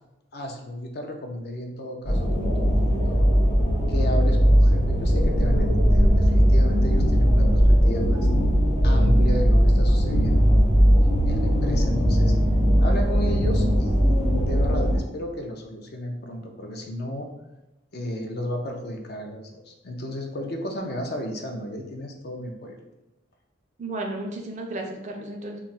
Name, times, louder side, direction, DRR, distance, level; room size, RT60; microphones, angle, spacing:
voice 1, 0.3-3.3 3.9-8.3 8.8-10.7 11.2-12.3 12.8-17.3 17.9-22.8, equal, 55° left, 3 dB, 0.4 m, -33 dB
sound 1, 2.0-15.0, equal, 80° left, 1.1 m, -19 dB
voice 2, 23.8-25.6, right 2 dB, 40° right, 2 dB, 0.4 m, -33 dB
2.3 x 2.0 x 3.9 m, 0.97 s
head